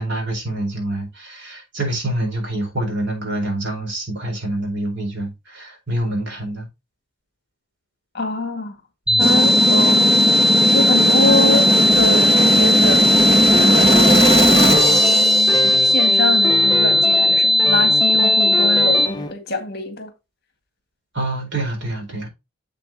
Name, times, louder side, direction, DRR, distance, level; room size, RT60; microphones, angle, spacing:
voice 1, 0.0-6.7 9.1-9.4 21.1-22.3, right 1 dB, 55° right, 4.4 m, -26 dB
voice 2, 8.1-8.8 9.2-13.1 13.8-20.1, left 2 dB, 50° left, 1.9 m, -25 dB
sound 1, 9.1-19.1, equal, 5° right, 0.5 m, -16 dB
sound 2, 9.2-16.1, equal, 30° right, 1.9 m, -18 dB
sound 3, 11.3-13.1 13.5-19.3, left 3 dB, 20° left, 1.1 m, -28 dB
7.7 x 7.7 x 2.9 m
head